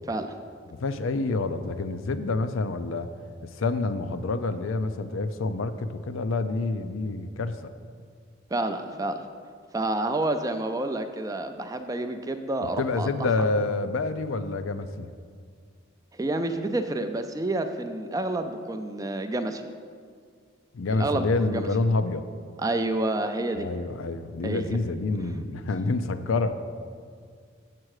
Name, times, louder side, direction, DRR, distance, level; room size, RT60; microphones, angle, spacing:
voice 1, 0.8-3.1 3.4-7.6 12.8-15.1 20.7-22.3 23.6-26.6, left 3 dB, 80° left, 10 dB, 0.5 m, -27 dB
voice 2, 8.5-9.2 9.7-13.1 16.1-19.6 21.0-21.7 22.6-23.7 24.4-24.8, right 2 dB, 15° right, 7 dB, 0.4 m, -29 dB
7.6 x 7.4 x 4.8 m, 2.1 s
head